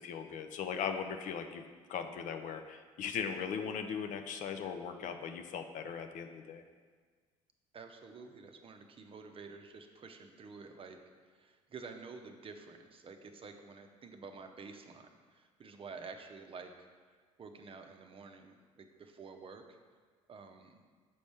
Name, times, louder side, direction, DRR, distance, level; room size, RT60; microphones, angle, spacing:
voice 1, 0.0-1.6 1.9-6.6, left 7 dB, 50° left, 7 dB, 0.5 m, -39 dB
voice 2, 7.7-16.9 17.4-19.6 20.3-20.8, right 4 dB, 35° right, 5 dB, 0.7 m, -50 dB
6.8 x 5.1 x 3.4 m, 1.5 s
figure-of-eight pair, 55°, 17 cm